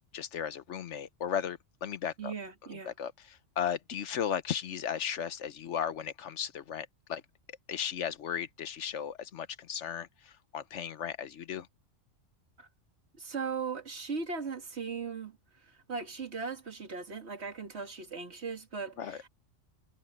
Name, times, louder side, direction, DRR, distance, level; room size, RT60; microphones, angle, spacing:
voice 1, 0.1-2.3 2.9-7.2 7.7-11.7 19.0-19.2, left 8 dB, 70° left, 1.1 m, -36 dB
voice 2, 2.2-2.9 12.6-12.7 13.2-19.3, right 5 dB, 60° right, 2.1 m, -38 dB
omnidirectional pair, 1.3 m